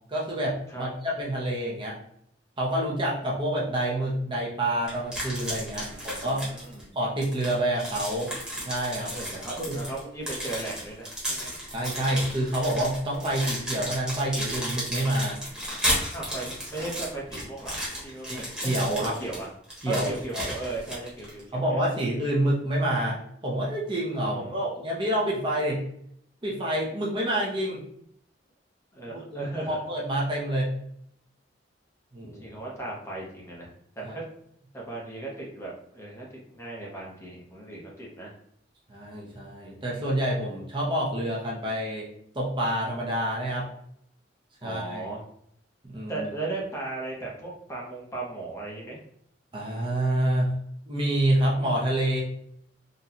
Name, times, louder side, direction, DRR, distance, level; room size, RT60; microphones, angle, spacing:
voice 1, 0.1-2.0 2.6-6.5 6.9-8.3 8.6-9.1 9.6-9.8 11.7-15.4 18.3-19.1 19.8-20.5 21.5-25.8 26.4-27.8 29.1-30.7 32.1-32.4 34.0-34.1 38.9-42.1 42.3-43.7 44.6-45.1 45.8-46.3 49.5-50.5 50.9-52.2, right 1 dB, 25° right, -4 dB, 0.7 m, -28 dB
sound 1, 4.9-6.8 7.2-21.4, equal, 5° right, 1.2 m, -33 dB
voice 2, 5.7-6.9 9.1-11.5 16.1-19.5 19.9-21.6 24.2-24.7 28.9-29.8 32.3-34.2 34.7-38.3 44.6-45.2 46.1-49.0, right 2 dB, 15° left, -3 dB, 0.8 m, -37 dB
3.9 x 2.3 x 2.8 m, 0.71 s
head